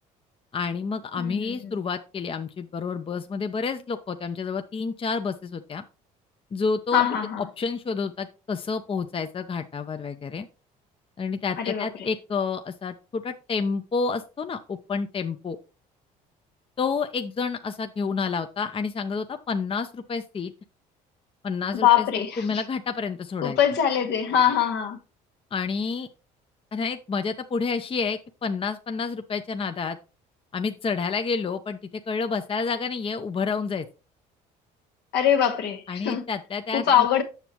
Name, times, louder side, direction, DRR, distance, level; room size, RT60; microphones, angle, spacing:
voice 1, 0.5-5.8 6.5-7.0 7.4-10.5 11.2-15.6 16.8-20.5 21.4-22.1 22.4-23.6 25.5-26.1 26.7-30.0 30.5-31.8 32.1-33.9 35.9-37.1, left 5 dB, 30° left, 0.7 m, -29 dB
voice 2, 1.1-1.7 6.9-7.4 11.6-11.8 21.7-22.4 23.4-25.0 35.1-36.2 36.7-37.2, left 9 dB, 70° left, 1.4 m, -22 dB
8.2 x 6.8 x 2.9 m
supercardioid pair, 70°, 18 cm